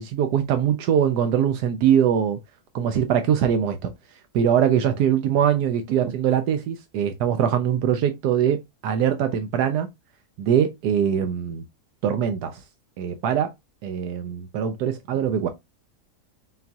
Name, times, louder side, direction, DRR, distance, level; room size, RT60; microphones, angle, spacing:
voice 1, 0.0-2.4 2.7-3.9 4.3-9.9 10.4-11.6 12.0-12.6 13.0-13.5 13.8-15.5, right 9 dB, 80° right, 1.2 m, -22 dB
5.8 x 2.3 x 2.7 m
omnidirectional pair, 1.7 m